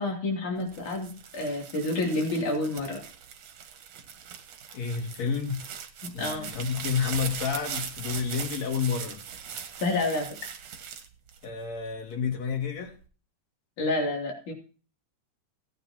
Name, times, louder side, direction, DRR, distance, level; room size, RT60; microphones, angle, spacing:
voice 1, 0.0-3.0 6.0-6.5 9.8-10.4 13.8-14.5, left 2 dB, 85° left, 0 dB, 4.4 m, -29 dB
sound 1, 0.6-12.0 12.5-13.1, right 7 dB, 65° right, 2.2 m, -40 dB
voice 2, 4.7-5.6 6.1-9.2 11.4-13.0, left 6 dB, 65° left, 2 dB, 3.3 m, -30 dB
17.5 x 9.2 x 2.9 m, 0.36 s
omnidirectional pair, 3.4 m